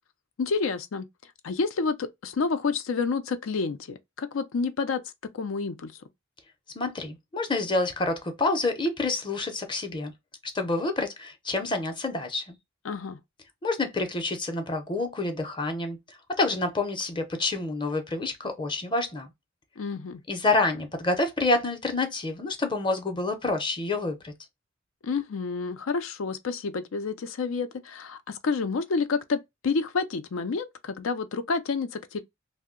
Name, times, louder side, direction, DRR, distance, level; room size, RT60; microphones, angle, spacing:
voice 1, 0.4-1.1 1.4-5.0 5.3-6.0 12.8-13.2 19.8-20.2 25.0-32.2, left 4 dB, 90° left, 0.5 m, -29 dB
voice 2, 6.8-10.1 10.5-12.5 13.6-16.0 16.4-19.3 20.3-24.3, left 2 dB, 25° left, 0.6 m, -28 dB
2.7 x 2.1 x 3.6 m
head